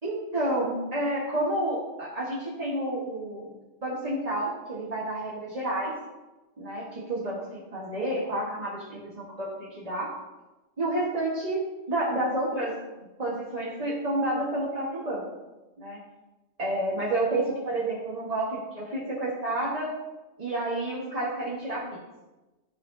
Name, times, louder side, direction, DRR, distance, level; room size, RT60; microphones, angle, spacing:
voice 1, 0.0-3.5 3.8-5.9 6.6-10.1 10.8-11.6 11.9-12.7 13.2-15.2 15.8-16.0 16.6-19.9 20.4-22.0, right 1 dB, 30° right, -6 dB, 1.3 m, -30 dB
12.0 x 4.3 x 2.6 m, 1.1 s
omnidirectional pair, 1.3 m